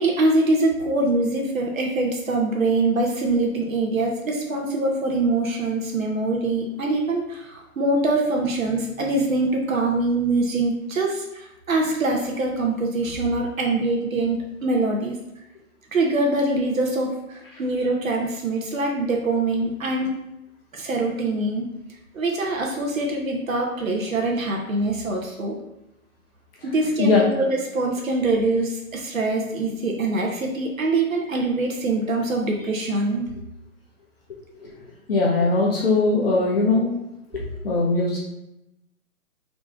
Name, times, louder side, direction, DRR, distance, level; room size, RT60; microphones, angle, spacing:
voice 1, 0.0-15.2 15.9-20.1 20.7-21.7 22.1-25.6 26.6-33.3, right 2 dB, 70° right, 0 dB, 1.0 m, -24 dB
voice 2, 27.0-27.4 34.6-34.7 35.1-36.9 37.3-38.2, left 3 dB, 40° left, -3 dB, 0.9 m, -20 dB
3.9 x 3.1 x 3.5 m, 0.89 s
figure-of-eight pair, 140°, 43 cm